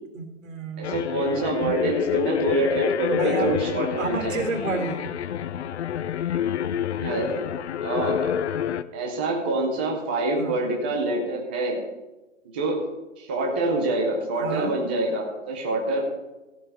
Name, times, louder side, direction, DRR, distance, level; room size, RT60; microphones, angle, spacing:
voice 1, 0.1-1.0 3.1-3.6 4.0-5.1 10.4-10.6 14.4-14.8, right 4 dB, 80° right, 4 dB, 3.3 m, -30 dB
sound 1, 0.8-8.8, left 9 dB, 60° left, 0.7 m, -28 dB
voice 2, 0.8-4.4 7.0-7.4 7.8-8.3 8.9-11.8 12.5-12.8 13.2-16.0, right 2 dB, 10° right, 0 dB, 0.4 m, -26 dB
14.5 x 5.5 x 8.0 m, 1.0 s
hypercardioid pair, 160°, 39 cm